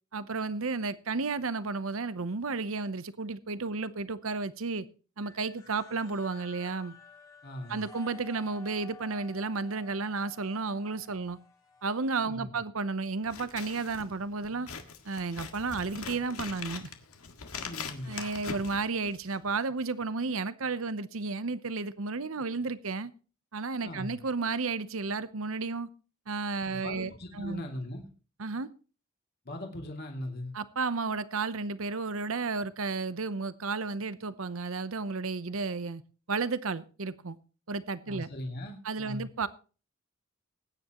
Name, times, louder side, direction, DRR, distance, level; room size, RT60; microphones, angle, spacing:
voice 1, 0.1-4.9 5.2-6.9 7.7-11.4 11.8-14.7 15.0-16.9 18.1-23.1 23.5-25.9 26.3-27.7 28.4-28.7 30.5-36.0 36.3-37.4 37.7-38.3 38.8-39.5, right 4 dB, 70° right, 0.8 m, -32 dB
sound 1, 5.2-12.3, left 5 dB, 15° left, 2.3 m, -53 dB
voice 2, 7.4-7.8 12.3-12.5 17.6-18.2 23.8-24.2 26.6-28.1 29.4-30.5 38.1-39.3, left 1 dB, 50° left, 2.6 m, -40 dB
Scissors, 13.2-19.5, left 5 dB, 85° left, 1.8 m, -42 dB
20.5 x 9.8 x 3.0 m
head